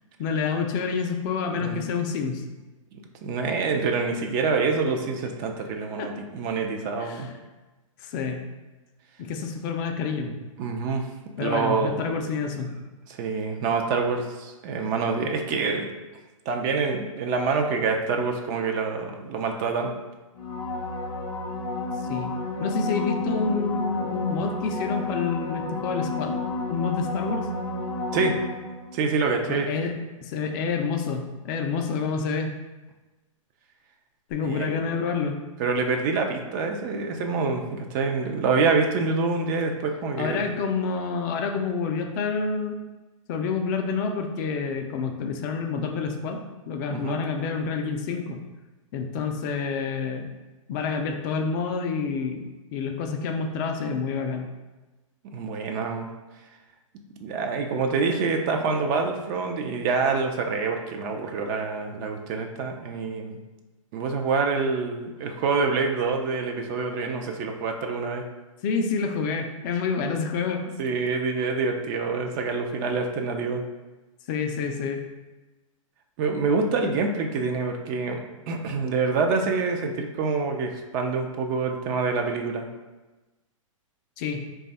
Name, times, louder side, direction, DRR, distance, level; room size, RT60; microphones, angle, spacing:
voice 1, 0.2-2.4 6.0-6.1 7.0-7.3 8.0-8.4 9.2-10.4 11.4-12.7 22.0-22.3 22.6-26.4 26.7-27.5 29.5-32.5 34.3-35.4 40.2-42.8 43.3-46.4 46.7-48.4 48.9-50.3 50.7-52.4 52.7-54.5 68.6-70.7 74.3-75.0 84.2-84.5, left 5 dB, 35° left, 4 dB, 0.4 m, -28 dB
voice 2, 3.2-7.3 10.6-11.1 11.4-12.0 13.1-15.9 16.5-19.9 28.1-28.3 28.9-29.7 34.4-34.8 35.6-40.4 46.9-47.2 55.3-56.1 57.2-63.4 63.9-68.2 70.8-73.6 76.2-78.2 78.5-82.7, right 4 dB, 35° right, 3 dB, 0.4 m, -26 dB
sound 1, 20.4-29.0 34.3-34.4, left 2 dB, 65° left, 0.8 m, -31 dB
3.2 x 2.3 x 4.0 m, 1.2 s
hypercardioid pair, 125°, 17 cm